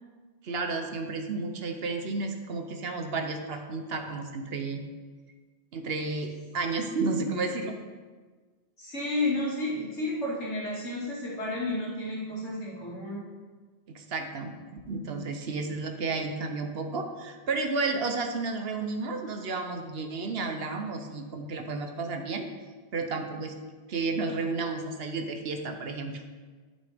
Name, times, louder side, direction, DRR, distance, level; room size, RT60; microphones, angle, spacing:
voice 1, 0.4-4.8 5.7-7.8 13.9-14.5 14.9-22.5 22.9-23.5 23.9-26.2, right 3 dB, 60° right, 5 dB, 1.0 m, -32 dB
voice 2, 8.8-13.2, left 2 dB, 85° left, -7 dB, 2.9 m, -31 dB
12.5 x 6.6 x 3.5 m, 1.4 s
omnidirectional pair, 1.2 m